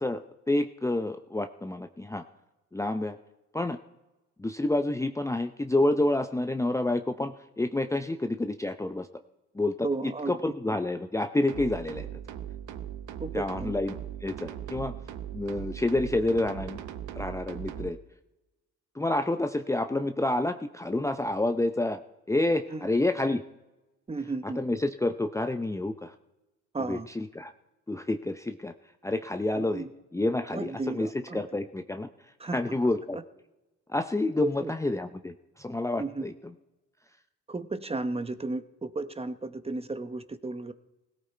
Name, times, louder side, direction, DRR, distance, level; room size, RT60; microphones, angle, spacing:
voice 1, 0.0-2.2 2.7-3.2 3.5-3.8 4.4-9.1 9.5-12.2 13.3-13.9 14.2-14.9 15.3-16.8 17.1-18.0 18.9-22.0 22.3-23.4 24.4-26.1 26.9-27.5 27.9-28.7 29.0-29.9 30.1-32.1 32.5-33.2 33.9-36.3, left 2 dB, 10° left, 8 dB, 0.6 m, -28 dB
voice 2, 9.8-10.3 13.2-13.7 22.7-22.8 24.1-24.6 26.7-27.1 29.6-29.9 30.5-31.5 32.4-32.6 34.4-34.7 36.0-36.3 37.5-40.7, right 3 dB, 20° right, 11 dB, 0.9 m, -34 dB
sound 1, 11.5-17.9, right 10 dB, 80° right, 1.0 m, -39 dB
17.0 x 16.0 x 4.4 m, 1.0 s
cardioid pair, 90°, 30 cm